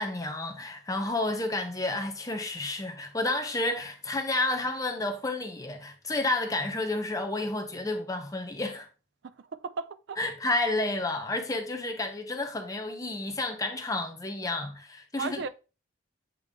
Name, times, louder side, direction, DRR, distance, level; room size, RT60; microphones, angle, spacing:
voice 1, 0.0-8.9 10.2-15.5, left 2 dB, 15° left, 0.7 m, -31 dB
voice 2, 9.2-10.2 15.2-15.5, right 4 dB, 55° right, 0.4 m, -36 dB
8.3 x 3.4 x 3.5 m
head